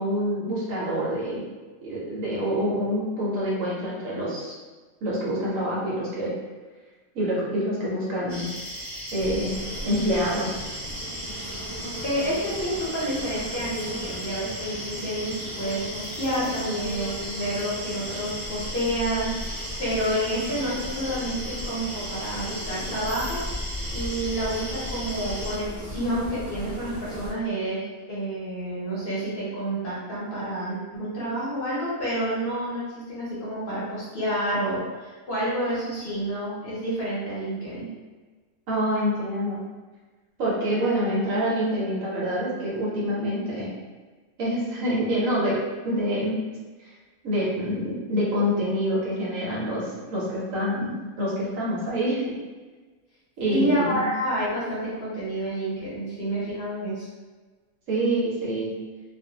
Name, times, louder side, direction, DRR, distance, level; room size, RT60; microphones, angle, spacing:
voice 1, 0.0-1.4 1.8-4.5 5.0-6.3 7.1-8.5 9.1-9.6 9.8-10.6 38.7-39.6 40.4-43.7 44.4-45.6 45.8-46.4 46.8-46.9 47.2-52.4 53.4-54.1 57.9-58.7, equal, 70° right, -6 dB, 1.2 m, -26 dB
sound 1, 8.3-25.6, equal, 35° right, 1.0 m, -36 dB
sound 2, 9.2-27.3, equal, 50° right, 0.3 m, -37 dB
voice 2, 12.0-23.4 23.9-37.9 53.5-57.1, right 1 dB, 50° left, -8 dB, 0.9 m, -29 dB
2.5 x 2.4 x 2.8 m, 1.3 s
omnidirectional pair, 1.4 m